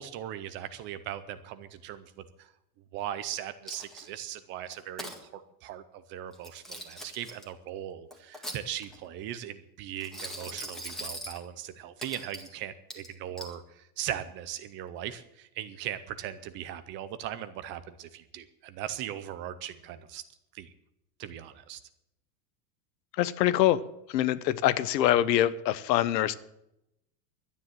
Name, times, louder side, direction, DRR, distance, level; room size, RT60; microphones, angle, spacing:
voice 1, 0.0-2.5 2.9-20.2 20.5-20.7 21.2-21.8, right 11 dB, 25° right, 0.4 m, -39 dB
Coin (dropping), 3.7-4.2 4.7-5.2 6.3-7.4 8.1-9.0 10.0-11.4 12.0-12.5 12.9-13.5, equal, ahead, 1.8 m, -41 dB
voice 2, 23.2-23.8 24.1-26.3, left 13 dB, 85° left, 1.1 m, -24 dB
12.5 x 10.0 x 7.7 m
supercardioid pair, 165°, 49 cm